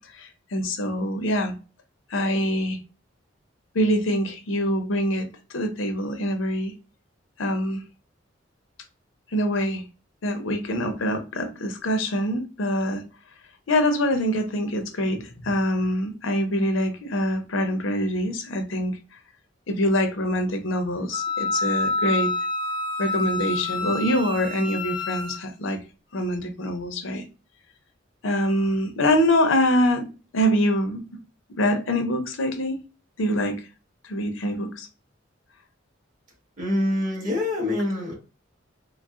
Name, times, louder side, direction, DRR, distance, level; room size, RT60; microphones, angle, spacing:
voice 1, 0.1-1.5 2.1-2.8 3.7-5.3 5.5-6.7 7.4-7.8 9.3-9.8 10.2-13.0 13.7-19.0 19.7-22.3 23.0-25.8 26.1-27.2 28.2-30.1 30.3-31.0 31.6-32.8 33.2-33.5 34.0-34.9, equal, 85° left, 6 dB, 0.7 m, -24 dB
Wind instrument woodwind instrument, 21.1-25.4, left 2 dB, 25° left, 0.4 m, -28 dB
voice 2, 36.6-38.1, left 1 dB, 40° right, -3 dB, 1.5 m, -25 dB
3.8 x 2.0 x 2.4 m, 0.32 s
head